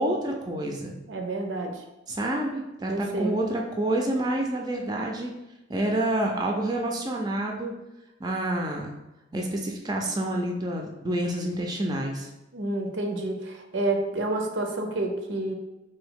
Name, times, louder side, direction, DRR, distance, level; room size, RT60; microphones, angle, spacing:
voice 1, 0.0-0.9 2.1-5.3 5.7-7.7 8.2-9.0 9.3-12.3, right 1 dB, 20° right, 1 dB, 0.4 m, -28 dB
voice 2, 1.1-1.8 2.9-3.4 12.5-15.5, right 2 dB, 80° right, 4 dB, 0.6 m, -29 dB
3.5 x 2.7 x 3.6 m, 0.99 s
head